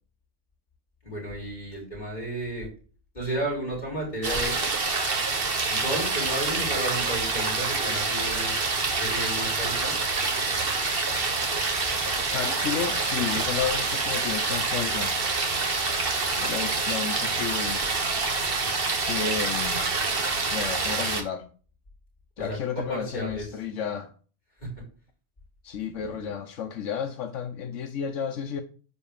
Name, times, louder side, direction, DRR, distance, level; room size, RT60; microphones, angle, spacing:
voice 1, 1.0-2.7 3.1-4.6 5.7-8.5 9.0-10.0 22.4-23.5 24.6-24.7 26.0-26.3, right 1 dB, 35° left, 5.3 m, -33 dB
sound 1, 4.2-21.2, right 3 dB, 50° right, 1.7 m, -27 dB
voice 2, 12.3-15.2 16.4-17.9 19.0-19.9 20.5-21.5 22.4-24.1 25.6-28.6, left 7 dB, 85° left, 1.2 m, -32 dB
10.0 x 4.5 x 7.2 m
omnidirectional pair, 1.2 m